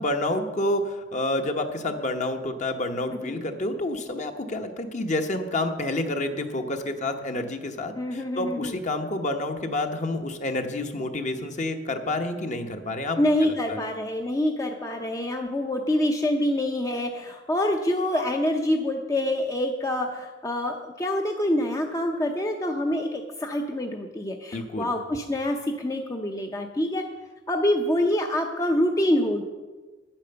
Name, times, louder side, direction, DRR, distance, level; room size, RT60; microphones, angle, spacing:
voice 1, 0.0-13.8 24.5-24.9, left 1 dB, 40° left, 6 dB, 1.0 m, -29 dB
voice 2, 7.9-8.8 13.2-27.1 27.5-29.4, left 1 dB, 20° left, 3 dB, 0.6 m, -26 dB
9.3 x 8.9 x 6.8 m, 1.3 s
head